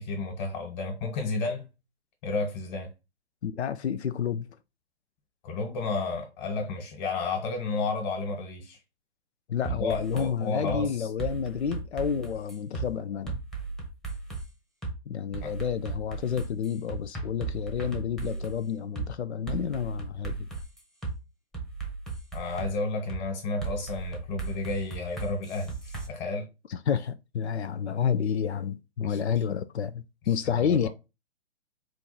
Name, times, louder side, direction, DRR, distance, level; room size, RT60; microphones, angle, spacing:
voice 1, 0.0-1.7 2.2-2.9 5.4-8.8 9.7-11.1 15.4-15.5 22.3-26.5 29.0-29.4 30.3-30.9, left 3 dB, 35° left, 1.5 m, -32 dB
voice 2, 3.4-4.5 9.5-13.4 15.1-20.5 26.7-30.9, left 7 dB, 85° left, 0.5 m, -30 dB
sound 1, 9.6-10.3 10.7-10.8 11.2-12.9 13.3-14.4 14.8-14.9 15.3-18.6 19.0-19.1 19.5-21.1 21.5-22.7 23.1-23.2 23.6-26.1, right 4 dB, ahead, 0.8 m, -36 dB
4.4 x 2.5 x 4.0 m
hypercardioid pair, 130°, 32 cm